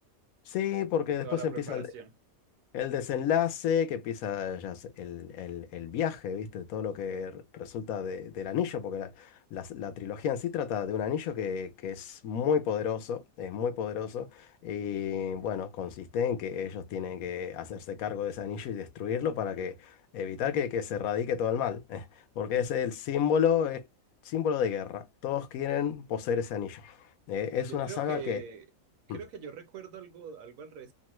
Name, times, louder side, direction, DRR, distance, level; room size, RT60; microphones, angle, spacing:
voice 1, 0.5-1.9 2.7-22.1 22.4-23.8 24.2-27.0 27.3-28.4 29.1-29.2, left 8 dB, 80° left, 1.0 m, -31 dB
voice 2, 1.2-2.1 27.7-28.6 29.1-30.9, right 7 dB, 70° right, 1.1 m, -42 dB
2.9 x 2.1 x 3.0 m
omnidirectional pair, 1.5 m